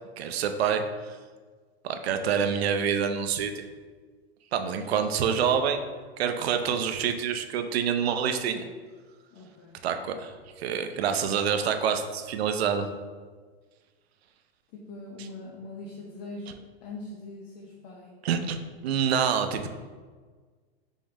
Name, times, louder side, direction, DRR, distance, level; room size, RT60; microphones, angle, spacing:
voice 1, 0.2-1.2 1.8-3.5 4.5-5.8 6.2-8.7 9.8-12.9 18.2-18.6 18.8-19.7, right 7 dB, 80° right, 7 dB, 0.5 m, -27 dB
voice 2, 9.3-9.8 14.7-18.2, left 2 dB, 45° left, -2 dB, 0.7 m, -42 dB
5.2 x 2.0 x 3.5 m, 1.5 s
hypercardioid pair, 120°, 31 cm